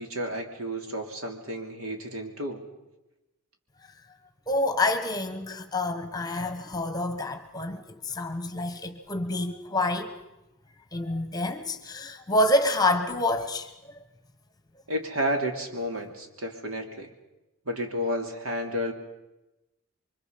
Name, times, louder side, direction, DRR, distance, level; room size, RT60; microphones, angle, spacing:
voice 1, 0.0-2.6 14.9-17.1 17.7-18.9, equal, 80° right, 3.1 m, -31 dB
voice 2, 4.5-10.1 10.9-13.7, left 1 dB, 15° left, 1.3 m, -27 dB
28.5 x 24.0 x 5.3 m
head